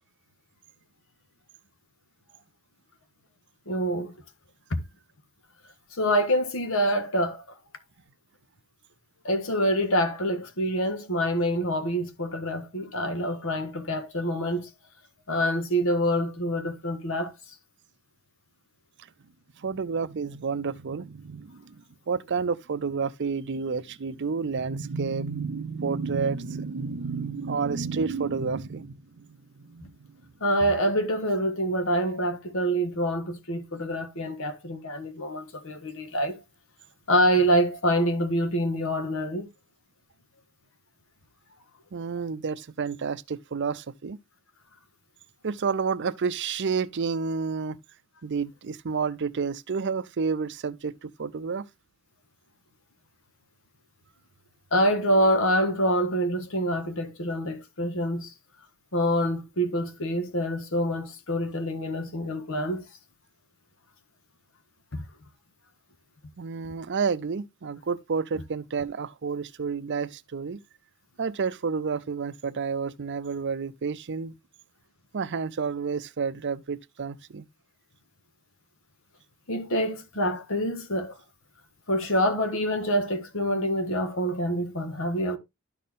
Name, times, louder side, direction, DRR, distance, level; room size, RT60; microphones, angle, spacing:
voice 1, 3.7-4.1 4.7-4.8 5.9-7.4 9.2-14.7 15.3-17.3 29.8-29.9 30.4-36.4 37.1-39.5 54.7-58.3 58.9-62.8 64.9-65.0 79.5-81.2 81.9-85.4, equal, 65° left, 1.5 m, -26 dB
voice 2, 19.6-30.2 41.9-44.2 45.4-47.8 48.2-51.7 66.4-70.6 71.2-74.4 75.1-77.5, right 5 dB, 55° right, 0.5 m, -30 dB
12.0 x 4.3 x 3.6 m
head